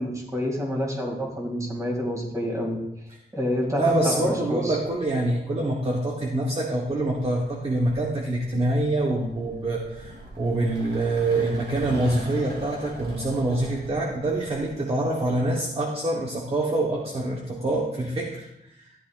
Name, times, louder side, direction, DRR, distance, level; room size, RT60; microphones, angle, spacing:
voice 1, 0.0-2.8 3.3-4.8, equal, 20° right, -1 dB, 2.2 m, -28 dB
voice 2, 3.7-18.5 18.8-18.9, right 2 dB, 35° right, -1 dB, 1.0 m, -25 dB
sound 1, 4.8-5.3 6.4-14.7, right 1 dB, 70° right, 1.9 m, -42 dB
13.5 x 9.9 x 2.4 m, 0.83 s
wide cardioid pair, 155°, 18 cm